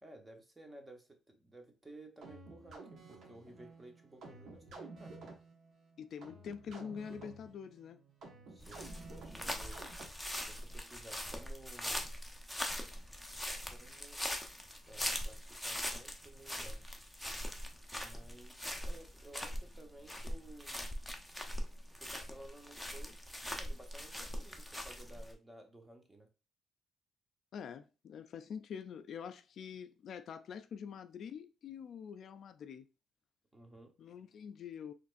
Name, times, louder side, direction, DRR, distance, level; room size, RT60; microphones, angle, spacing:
voice 1, 0.0-5.2 8.5-9.8 10.4-12.1 13.6-14.2 14.9-16.8 18.0-20.9 22.0-26.3 33.5-33.9, right 1 dB, 15° right, 1.0 m, -55 dB
sound 1, 2.2-10.4, right 3 dB, 65° right, 1.3 m, -52 dB
voice 2, 6.0-8.0 27.5-32.9 34.0-34.9, left 7 dB, 65° left, 0.3 m, -45 dB
sound 2, 8.6-25.3, equal, ahead, 0.7 m, -41 dB
4.2 x 3.1 x 2.5 m
cardioid pair, 90°, 0 cm